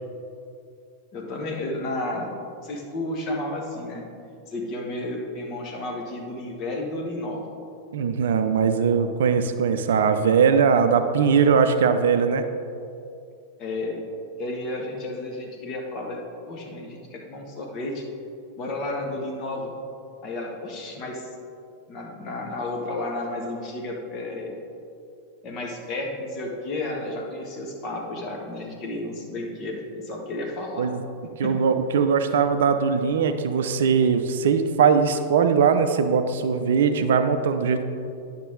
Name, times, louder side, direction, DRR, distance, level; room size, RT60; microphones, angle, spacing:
voice 1, 1.1-2.3 2.6-4.0 4.5-7.4 13.6-14.0 14.4-16.2 16.5-18.1 18.6-19.7 20.2-21.3 21.9-24.5 25.4-30.9 31.2-31.6, left 2 dB, 35° left, 0 dB, 1.4 m, -32 dB
voice 2, 7.9-12.5 30.8-31.0 31.4-37.8, right 6 dB, 60° right, 9 dB, 0.5 m, -20 dB
10.0 x 6.2 x 3.7 m, 2.5 s
figure-of-eight pair, 90°, 0 cm